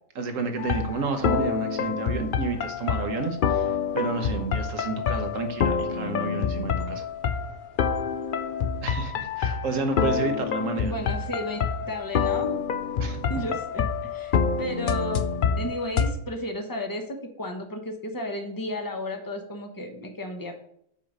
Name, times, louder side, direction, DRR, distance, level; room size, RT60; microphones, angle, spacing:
voice 1, 0.1-7.0 8.8-10.9 13.0-13.2, right 4 dB, 70° right, 5 dB, 1.3 m, -30 dB
sound 1, 0.6-16.1, left 6 dB, 55° left, 0.6 m, -27 dB
voice 2, 10.8-11.6 11.9-12.5 13.3-15.2 15.6-20.5, left 1 dB, 15° left, 4 dB, 0.9 m, -33 dB
5.6 x 4.9 x 6.5 m, 0.70 s
omnidirectional pair, 1.4 m